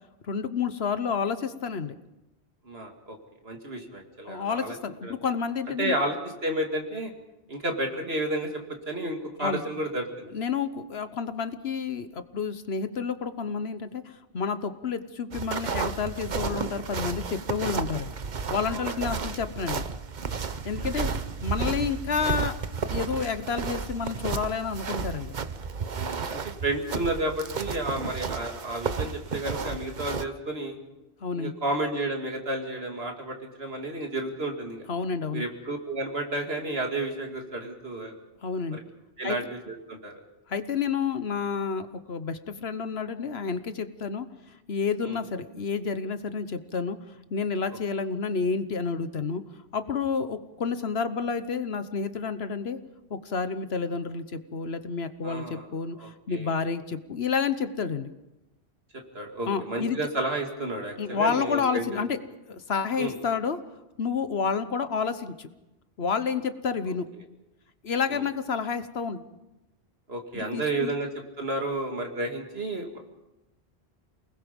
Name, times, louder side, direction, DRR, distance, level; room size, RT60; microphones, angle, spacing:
voice 1, 0.3-2.0 4.2-5.9 9.4-9.6 10.3-18.1 18.5-19.8 20.6-21.1 21.4-22.5 22.9-25.3 31.2-31.5 34.9-35.4 38.4-38.8 39.2-39.4 40.5-44.3 44.7-47.0 47.3-49.4 49.7-52.8 53.1-58.1 59.5-60.0 61.0-62.2 62.5-63.6 64.0-65.5 66.0-67.1 67.8-69.2 70.3-70.9, left 5 dB, 70° left, 11 dB, 1.3 m, -30 dB
voice 2, 2.6-3.2 3.4-4.8 5.0-5.2 5.8-7.1 7.5-8.5 8.9-10.3 18.7-19.3 20.8-20.9 25.9-30.8 31.3-34.9 35.3-38.1 38.7-38.8 39.2-40.2 45.0-45.2 55.2-55.7 56.0-56.6 58.9-62.1 63.0-63.2 68.1-68.2 70.1-71.1 71.4-73.0, right 2 dB, 70° right, 2 dB, 2.7 m, -31 dB
sound 1, 15.3-30.2, right 5 dB, 45° right, 1.0 m, -32 dB
29.0 x 20.0 x 5.3 m, 0.99 s
omnidirectional pair, 1.1 m